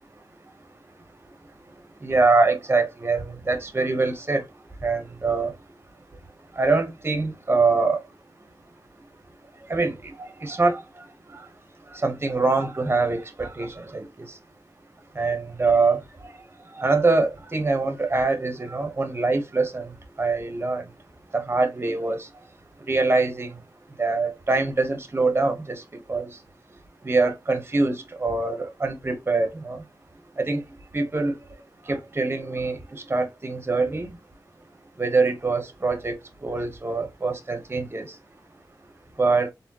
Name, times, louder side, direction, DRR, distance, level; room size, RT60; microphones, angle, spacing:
voice 1, 2.0-4.4 4.8-5.5 6.6-8.0 9.7-10.8 11.3-11.4 12.0-14.0 15.2-16.0 16.8-19.9 20.2-20.8 21.3-22.3 22.9-23.5 24.0-25.8 26.1-26.3 27.0-29.8 30.4-30.6 30.9-31.3 31.9-34.1 35.0-38.1 39.2-39.5, right 3 dB, 30° right, 1.1 m, -24 dB
4.2 x 3.5 x 2.9 m
wide cardioid pair, 85°, 8 cm